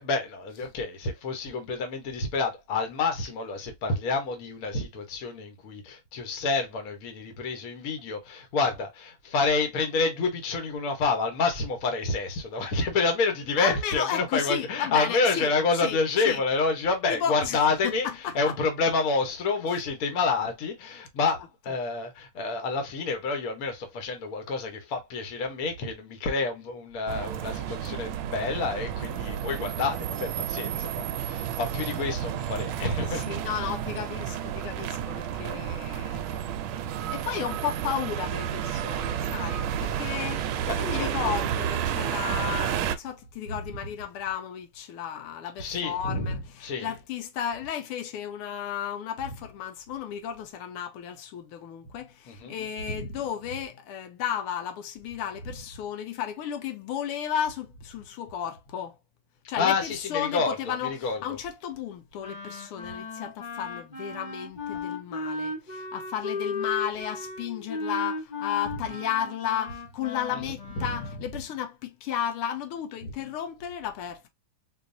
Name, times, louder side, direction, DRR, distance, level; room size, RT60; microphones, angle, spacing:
voice 1, 0.0-33.3 33.6-33.7 40.6-41.1 45.6-46.9 52.3-52.6 52.9-53.1 59.6-61.4 70.3-70.9 73.0-73.1, left 4 dB, 50° left, 1.3 m, -28 dB
voice 2, 13.6-15.5 15.8-16.0 16.3-16.4 17.1-18.5 33.1-36.3 37.1-58.9 59.5-74.3, left 9 dB, 85° left, 1.6 m, -33 dB
sound 1, 27.1-43.0, right 9 dB, 75° right, 1.3 m, -31 dB
Wind instrument woodwind instrument, 62.2-71.2, left 3 dB, 30° left, 1.0 m, -36 dB
4.6 x 2.5 x 2.6 m
omnidirectional pair, 2.4 m